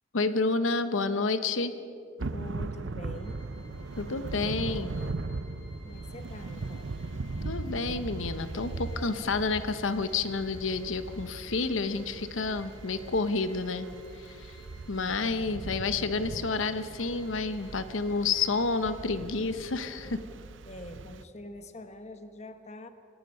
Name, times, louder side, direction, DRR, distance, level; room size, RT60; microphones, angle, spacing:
voice 1, 0.1-1.7 4.0-5.0 7.4-13.9 14.2-14.6 14.9-20.2, left 3 dB, 85° left, 11 dB, 0.9 m, -30 dB
Thunder / Rain, 2.2-21.2, right 3 dB, 75° right, 0.7 m, -39 dB
voice 2, 2.3-3.4 5.8-7.0 15.0-15.2 20.7-22.9, left 1 dB, 35° left, 9 dB, 1.1 m, -45 dB
sound 1, 3.1-19.0, left 3 dB, 60° left, 3.7 m, -59 dB
26.5 x 18.0 x 5.5 m, 2.6 s
head